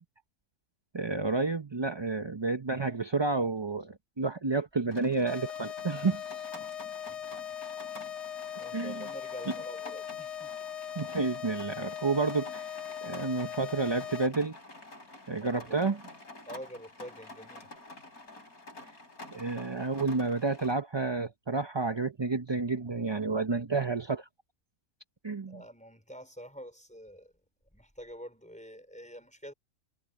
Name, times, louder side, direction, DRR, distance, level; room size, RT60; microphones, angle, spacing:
voice 1, 0.9-6.4 8.7-9.0 11.0-14.6 15.3-16.0 19.3-24.3 25.2-25.6, right 3 dB, 25° right, 0.6 m, -30 dB
Rain, 4.9-20.7, left 2 dB, 70° left, 8.1 m, -49 dB
sound 1, 5.3-14.3, left 9 dB, 50° left, 0.4 m, -40 dB
voice 2, 8.6-10.5 15.4-15.8 16.5-17.7 19.3-19.4 23.0-23.2 25.5-27.3 27.7-29.5, equal, 5° left, 4.7 m, -47 dB
omnidirectional pair, 1.6 m